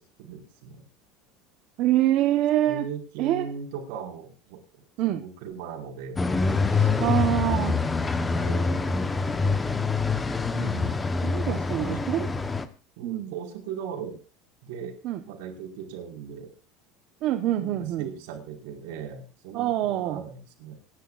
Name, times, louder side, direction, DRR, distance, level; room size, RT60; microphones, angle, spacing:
voice 1, 0.2-0.9 2.6-4.6 5.0-6.2 6.7-6.9 8.3-9.0 11.5-11.9 13.0-14.2 14.6-14.9 15.2-16.5 17.6-20.8, right 6 dB, 75° right, 1 dB, 5.0 m, -38 dB
voice 2, 1.8-2.8 3.2-3.5 5.0-5.2 7.0-7.8 10.5-10.9 11.2-12.3 13.0-13.3 15.0-15.2 17.2-18.1 19.5-20.2, right 13 dB, 50° right, 7 dB, 1.1 m, -25 dB
sound 1, 6.2-12.6, left 4 dB, 15° left, 1.1 m, -25 dB
26.0 x 11.0 x 2.5 m, 0.35 s
cardioid pair, 155°, 0 cm